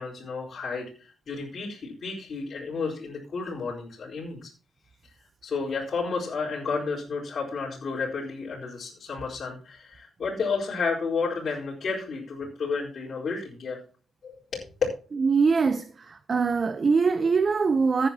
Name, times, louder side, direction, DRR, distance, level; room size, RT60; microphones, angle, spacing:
voice 1, 0.0-4.5 5.4-13.8 14.2-14.6, left 4 dB, 50° left, 4.4 m, -32 dB
voice 2, 15.2-18.1, right 5 dB, 35° right, 0.8 m, -23 dB
16.0 x 9.8 x 2.9 m
cardioid pair, 130°, 0 cm